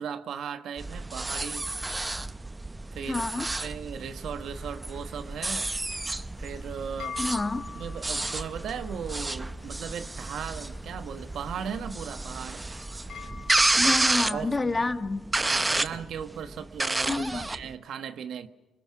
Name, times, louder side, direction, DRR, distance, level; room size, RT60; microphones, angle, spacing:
voice 1, 0.0-1.7 2.9-5.7 6.4-7.2 7.7-12.6 13.8-13.9 14.3-14.5 14.7-14.9 15.4-18.5, right 7 dB, 70° right, 9 dB, 1.3 m, -37 dB
sound 1, 0.8-17.7, right 2 dB, 15° right, 0.7 m, -31 dB
voice 2, 3.0-3.5 7.2-7.7 13.7-15.3 17.1-17.5, left 3 dB, 25° left, 8 dB, 1.4 m, -29 dB
sound 2, 4.5-14.1, left 1 dB, 5° left, 4.9 m, -54 dB
sound 3, 6.4-14.9, left 6 dB, 70° left, 3.9 m, -46 dB
27.0 x 21.5 x 6.1 m, 1.1 s
cardioid pair, 90°, 0 cm